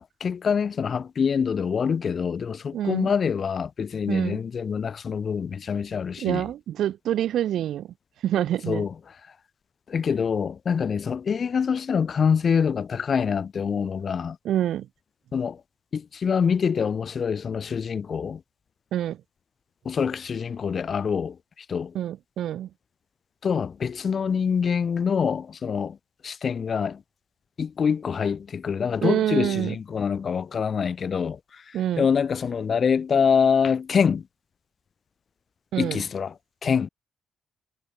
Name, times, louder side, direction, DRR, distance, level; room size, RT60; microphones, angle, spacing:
voice 1, 0.0-6.5 8.7-9.4 9.9-14.4 15.3-15.6 15.9-18.4 19.9-22.0 23.4-26.0 26.2-27.0 27.6-34.3 35.8-36.9, left 6 dB, 45° left, 3.4 m, -25 dB
voice 2, 2.7-3.1 4.1-4.4 6.2-7.9 8.2-8.8 14.4-14.9 18.9-19.2 21.9-22.7 29.0-29.7 31.7-32.1 35.7-36.0, right 11 dB, 75° right, 6.0 m, -26 dB
cardioid pair, 90°, 0 cm